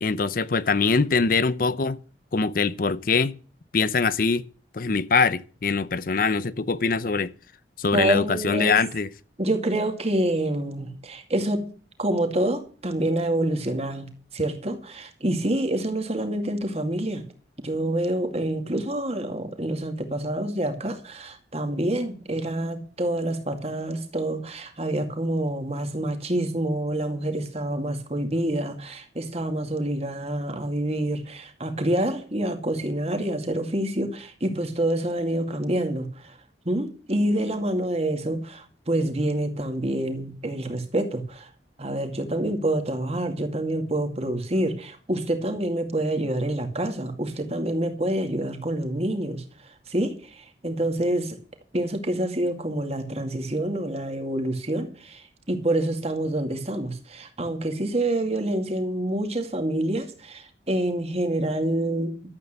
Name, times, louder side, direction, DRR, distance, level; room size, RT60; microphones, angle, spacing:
voice 1, 0.0-2.0 2.3-3.3 3.7-4.4 4.7-7.3 7.8-9.1, left 4 dB, 50° left, 0.7 m, -23 dB
voice 2, 7.9-8.8 9.4-11.7 12.0-17.2 17.6-36.4 36.7-41.5 41.8-49.4 49.9-51.4 51.7-62.1, right 1 dB, 35° right, 2.3 m, -27 dB
12.5 x 8.3 x 6.7 m
head